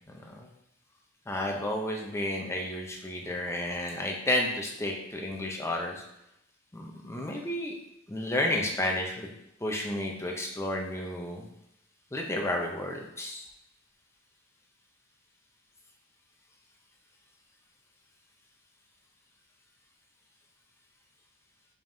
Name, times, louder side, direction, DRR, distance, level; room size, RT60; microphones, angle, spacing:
voice 1, 0.1-0.5 1.3-6.0 6.7-7.7 8.1-9.3 9.6-11.4 12.1-13.4, left 1 dB, 15° left, 0 dB, 0.5 m, -31 dB
5.4 x 3.5 x 2.7 m, 0.83 s
head